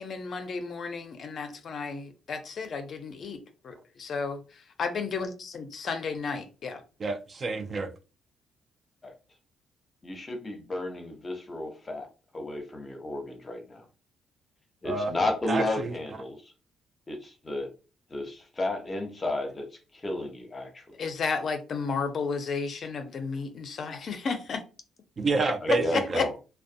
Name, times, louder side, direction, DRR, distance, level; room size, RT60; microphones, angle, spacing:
voice 1, 0.0-6.8 21.0-24.6 25.7-26.4, left 5 dB, 55° left, 0.4 m, -32 dB
voice 2, 7.0-7.9 14.8-15.1 15.5-16.2 25.2-25.8 26.1-26.2, right 3 dB, 40° right, 0.4 m, -29 dB
voice 3, 10.0-12.1 12.3-13.8 14.8-16.4 17.1-17.7 18.1-19.6 20.0-20.8 25.6-26.3, left 2 dB, 30° left, 0.8 m, -32 dB
2.5 x 2.2 x 2.5 m
cardioid pair, 90°, 0 cm